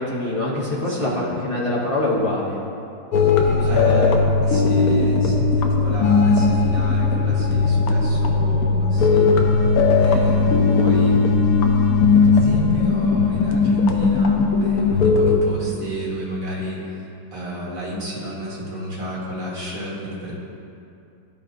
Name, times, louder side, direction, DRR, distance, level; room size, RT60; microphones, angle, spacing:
voice 1, 0.0-2.6 3.4-4.2, left 2 dB, 35° left, -7 dB, 0.5 m, -24 dB
voice 2, 0.9-1.2 3.3-9.3 10.0-11.2 12.2-20.3, right 1 dB, 45° right, -6 dB, 2.0 m, -32 dB
sound 1, 3.1-15.4, left 4 dB, 70° left, 0.9 m, -18 dB
13.5 x 5.0 x 2.7 m, 2.6 s
omnidirectional pair, 2.1 m